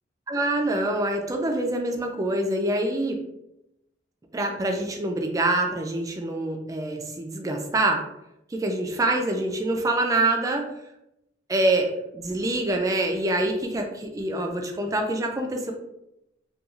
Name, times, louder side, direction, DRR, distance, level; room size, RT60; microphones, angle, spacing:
voice 1, 0.3-3.2 4.3-8.0 8.5-10.7 11.5-15.7, right 2 dB, 20° right, 3 dB, 0.3 m, -25 dB
2.3 x 2.3 x 2.9 m, 0.86 s
head